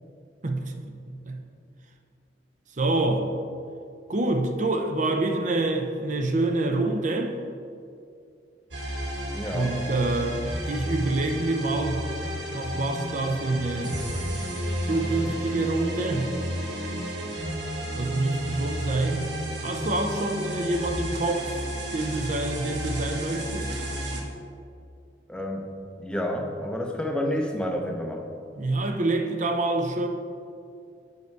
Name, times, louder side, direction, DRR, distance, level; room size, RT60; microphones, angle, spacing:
voice 1, 0.4-0.7 1.1-1.4 2.8-3.3 4.1-7.3 9.5-10.4 10.7-12.0 12.5-13.9 14.8-16.4 17.9-19.3 19.6-21.5 21.9-23.7 28.6-30.1, right 2 dB, 45° right, 5 dB, 0.7 m, -26 dB
sound 1, 8.7-24.2, equal, 85° right, 1.3 m, -32 dB
voice 2, 9.3-9.9 25.3-25.7 26.0-28.3, left 1 dB, 5° left, 2 dB, 0.7 m, -30 dB
8.2 x 5.5 x 4.6 m, 2.4 s
head